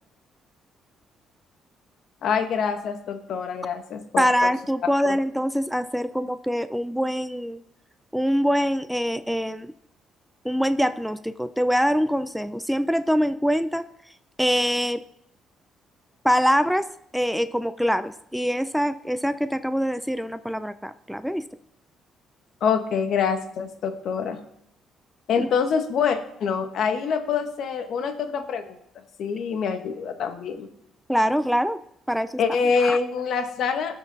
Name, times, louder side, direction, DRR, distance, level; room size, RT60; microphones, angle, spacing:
voice 1, 2.2-4.5 22.6-24.4 25.3-28.8 29.2-30.7 32.4-33.9, left 6 dB, 65° left, 7 dB, 1.3 m, -25 dB
voice 2, 4.2-7.6 8.1-9.7 10.4-13.9 14.4-15.0 16.2-16.9 17.1-21.4 25.4-25.5 31.1-31.8 32.1-32.4 32.8-33.0, equal, ahead, 11 dB, 0.5 m, -24 dB
18.0 x 6.2 x 4.1 m, 0.74 s
cardioid pair, 90°, 0 cm